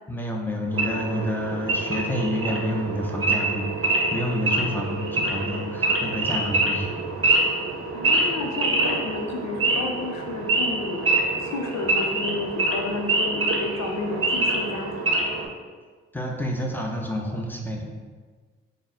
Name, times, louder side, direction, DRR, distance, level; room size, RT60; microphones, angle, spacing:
voice 1, 0.1-6.9 16.1-17.9, left 1 dB, 5° left, 0 dB, 0.7 m, -29 dB
Wild animals / Idling, 0.7-15.5, right 2 dB, 45° right, 0.8 m, -25 dB
voice 2, 7.9-14.9, left 3 dB, 65° left, 3 dB, 0.6 m, -31 dB
3.9 x 2.1 x 3.7 m, 1.5 s
supercardioid pair, 50°, 29 cm